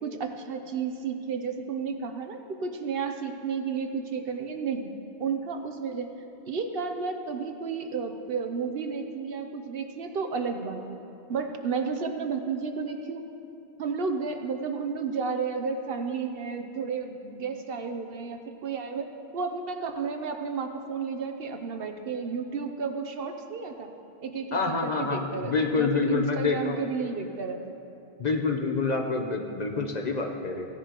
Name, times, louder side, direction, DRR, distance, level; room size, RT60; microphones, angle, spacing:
voice 1, 0.0-4.9 5.2-6.1 6.5-11.0 11.3-13.2 13.8-23.9 24.2-27.7, right 5 dB, 65° right, 6 dB, 0.9 m, -32 dB
voice 2, 24.5-26.8 28.2-30.7, left 4 dB, 45° left, 2 dB, 0.8 m, -27 dB
16.0 x 10.5 x 2.9 m, 2.8 s
omnidirectional pair, 1.1 m